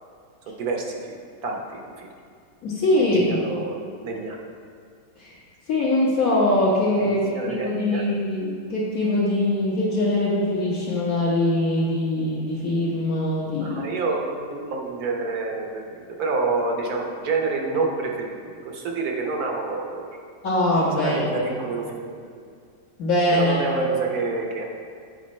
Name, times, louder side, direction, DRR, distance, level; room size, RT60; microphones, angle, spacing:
voice 1, 0.6-1.0 1.4-2.1 3.1-4.4 7.0-8.0 13.6-18.4 18.6-20.0 21.0-22.2 23.3-24.7, right 3 dB, 65° right, 0 dB, 1.3 m, -28 dB
voice 2, 2.6-3.4 5.2-5.3 5.7-7.2 7.6-13.8 20.4-21.2 23.0-23.6, left 1 dB, 55° left, -9 dB, 1.6 m, -22 dB
8.4 x 4.9 x 4.3 m, 2.2 s
omnidirectional pair, 1.9 m